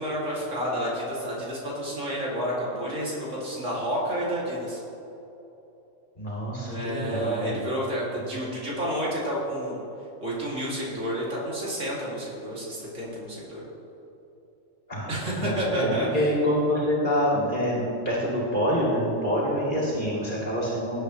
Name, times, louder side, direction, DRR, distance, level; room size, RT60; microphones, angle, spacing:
voice 1, 0.0-4.8 6.7-9.8 10.2-13.6 15.1-16.3, equal, 80° right, -6 dB, 2.9 m, -30 dB
voice 2, 6.2-7.6 14.9-21.0, equal, 40° left, -6 dB, 2.4 m, -26 dB
17.5 x 8.0 x 3.1 m, 2.9 s
omnidirectional pair, 1.3 m